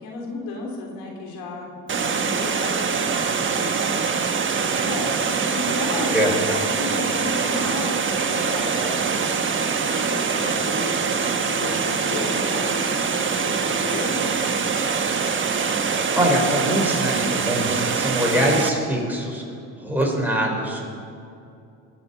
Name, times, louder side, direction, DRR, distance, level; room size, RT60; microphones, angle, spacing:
voice 1, 0.0-1.7 2.0-3.9 4.8-6.2 6.5-14.4, left 3 dB, 85° left, 0 dB, 3.6 m, -33 dB
Water, 1.9-18.7, right 5 dB, 35° right, 1.3 m, -24 dB
voice 2, 16.1-19.4 19.8-20.9, equal, 5° right, -1 dB, 4.6 m, -23 dB
20.0 x 7.1 x 8.2 m, 2.5 s
supercardioid pair, 85°, 35 cm